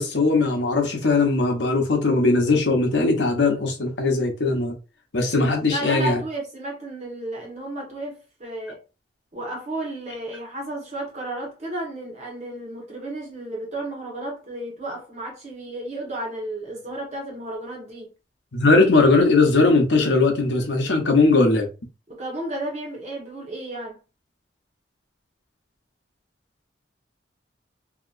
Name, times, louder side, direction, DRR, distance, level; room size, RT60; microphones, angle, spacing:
voice 1, 0.0-4.7 5.1-6.2 18.5-21.7, left 3 dB, 80° left, 0.9 m, -19 dB
voice 2, 5.7-8.8 9.3-18.1 22.1-24.0, right 1 dB, 40° right, 1.4 m, -33 dB
2.9 x 2.9 x 2.5 m
head